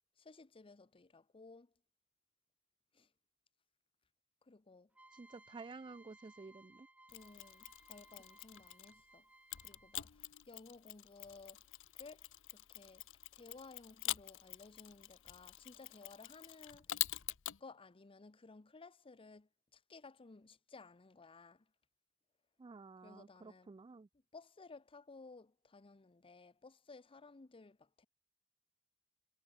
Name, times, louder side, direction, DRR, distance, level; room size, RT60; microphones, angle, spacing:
voice 1, 0.2-1.7 2.9-3.1 4.4-4.9 7.1-9.2 9.6-11.6 11.9-13.0 13.3-17.0 17.6-21.7 23.0-23.7 24.3-28.1, left 3 dB, 25° left, 0.6 m, -57 dB
sound 1, 4.9-10.2, right 1 dB, 5° right, 2.4 m, -63 dB
voice 2, 5.1-6.9 22.6-24.1, right 4 dB, 20° right, 0.3 m, -52 dB
Mechanisms, 7.1-9.0 9.5-17.6, left 15 dB, 60° left, 0.8 m, -45 dB
head